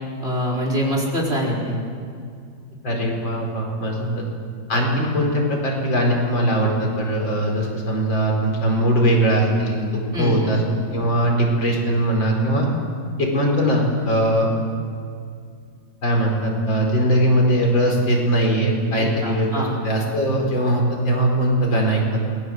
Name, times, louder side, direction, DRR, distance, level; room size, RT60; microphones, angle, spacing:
voice 1, 0.2-1.8 2.9-3.0 4.0-4.1 10.1-10.5 19.0-19.7, equal, 30° right, -1 dB, 5.0 m, -24 dB
voice 2, 2.8-4.2 4.7-9.9 10.2-10.6 10.9-12.7 13.2-14.5 16.0-22.4, right 1 dB, 80° left, 0 dB, 5.3 m, -20 dB
27.5 x 21.0 x 7.9 m, 2.3 s
omnidirectional pair, 2.1 m